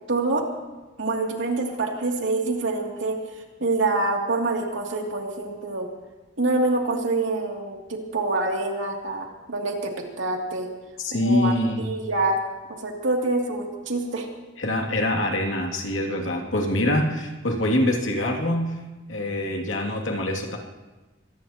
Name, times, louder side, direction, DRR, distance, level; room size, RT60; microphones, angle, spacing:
voice 1, 0.1-0.4 1.0-3.2 3.6-5.9 6.4-10.7 11.1-12.4 12.8-14.3, right 2 dB, 75° right, 0 dB, 2.6 m, -26 dB
voice 2, 11.0-11.8 14.6-18.8 19.1-20.6, left 1 dB, 85° left, 1 dB, 2.5 m, -24 dB
24.5 x 18.5 x 2.9 m, 1.2 s
head